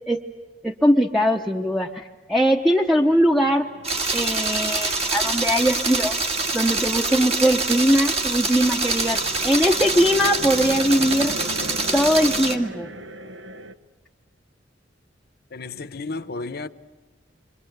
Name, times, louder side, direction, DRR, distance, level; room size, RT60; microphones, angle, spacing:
voice 1, 0.6-3.7 4.1-6.3 6.5-11.3 11.9-12.9, equal, ahead, 0.9 m, -21 dB
sound 1, 2.9-13.7, equal, 70° right, 1.2 m, -39 dB
sound 2, 3.8-12.5, right 3 dB, 35° right, 1.9 m, -25 dB
voice 2, 15.5-16.7, left 3 dB, 55° left, 1.0 m, -32 dB
28.0 x 24.5 x 8.1 m
head